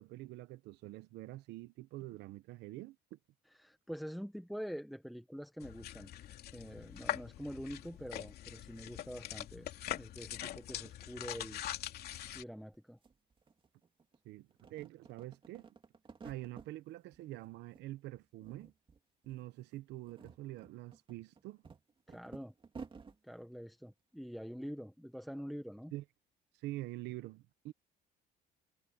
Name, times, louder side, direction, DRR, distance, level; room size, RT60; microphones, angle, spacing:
voice 1, 0.0-3.2 14.2-15.7 16.2-18.7 19.2-21.6 25.9-26.0 26.6-27.7, right 17 dB, 85° right, 1.1 m, -46 dB
voice 2, 3.5-6.1 6.5-9.7 9.9-11.6 12.3-13.0 22.1-22.5 23.2-25.9, equal, ahead, 1.4 m, -45 dB
sound 1, 5.6-12.4, left 12 dB, 70° left, 2.9 m, -43 dB
sound 2, 12.7-12.8 13.0-14.2 14.5-16.7 17.1-17.9 18.1-19.0 19.2-19.4 19.9-23.2, right 5 dB, 30° right, 2.5 m, -53 dB
cardioid pair, 110°, 17 cm